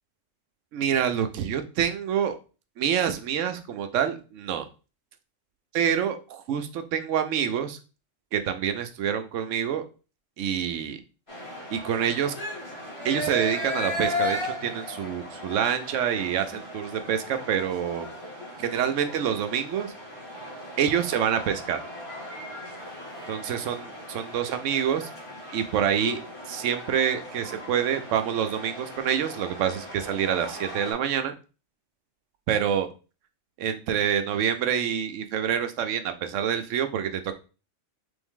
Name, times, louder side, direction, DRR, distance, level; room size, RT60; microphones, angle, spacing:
voice 1, 0.7-2.4 2.8-4.7 5.7-7.8 8.3-9.8 10.4-11.0 11.7-12.3 13.0-18.1 18.6-19.9 20.8-21.8 23.3-25.1 25.5-26.2 26.5-31.3 32.5-32.9 33.6-37.3, right 8 dB, 80° right, 8 dB, 1.0 m, -27 dB
sound 1, 11.3-30.9, left 1 dB, 55° left, 1.7 m, -37 dB
3.5 x 3.4 x 3.6 m, 0.34 s
omnidirectional pair, 1.3 m